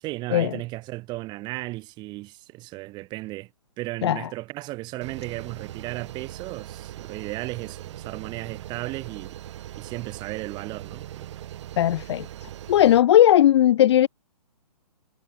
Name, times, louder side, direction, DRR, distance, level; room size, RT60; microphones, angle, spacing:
voice 1, 0.0-3.5 3.8-9.4 9.8-11.3, right 20 dB, 20° right, 1.4 m, -35 dB
sound 1, 5.0-13.0, right 12 dB, 45° right, 7.0 m, -40 dB
voice 2, 11.8-12.3 12.7-14.1, left 12 dB, 40° left, 0.6 m, -17 dB
hypercardioid pair, 145°, 21 cm